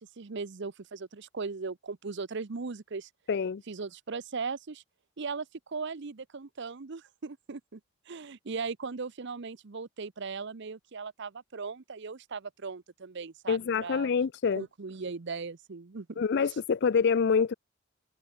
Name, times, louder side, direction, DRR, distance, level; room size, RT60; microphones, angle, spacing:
voice 1, 0.0-3.1 3.7-4.8 5.2-7.8 8.1-14.1 14.6-16.2 16.5-16.6, right 4 dB, 60° right, 0.7 m, -38 dB
voice 2, 3.3-3.6 13.5-14.6 16.2-17.5, left 6 dB, 55° left, 0.4 m, -26 dB
head